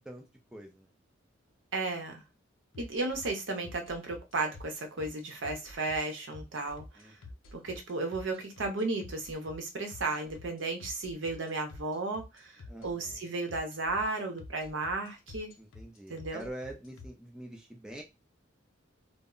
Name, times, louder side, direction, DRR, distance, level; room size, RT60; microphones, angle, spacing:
voice 1, 0.5-0.9 2.8-2.9 7.0-7.1 12.7-13.2 15.6-18.0, right 1 dB, 5° right, 1 dB, 0.3 m, -45 dB
voice 2, 1.7-2.2 2.8-6.8 7.5-12.5 12.8-15.5 16.1-16.4, right 3 dB, 65° right, 4 dB, 0.7 m, -34 dB
sound 1, 2.7-17.1, left 2 dB, 75° left, 0.5 m, -48 dB
2.1 x 2.0 x 3.6 m, 0.25 s
head